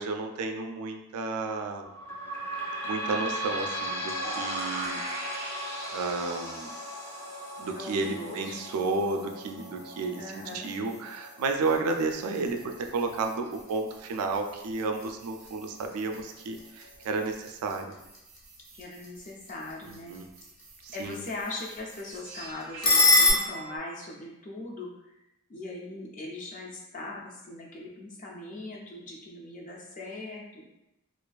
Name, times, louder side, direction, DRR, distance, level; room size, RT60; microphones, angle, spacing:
voice 1, 0.0-1.9 2.8-5.0 5.3-5.4 5.9-6.7 7.6-17.9 20.1-20.3 20.8-21.2, right 3 dB, 90° right, 5 dB, 0.3 m, -32 dB
sound 1, 1.8-15.0 15.6-15.7 15.9-16.0 16.8-16.9, right 1 dB, 75° left, 1.0 m, -38 dB
sound 2, 4.2-23.8, right 3 dB, 45° right, 0.6 m, -46 dB
voice 2, 7.8-9.1 10.2-10.7 18.7-20.2 20.9-25.1 25.5-30.7, left 2 dB, 35° left, -2 dB, 0.3 m, -40 dB
sound 3, 11.5-23.3, left 3 dB, 60° left, 0.7 m, -31 dB
2.4 x 2.2 x 2.3 m, 0.90 s
head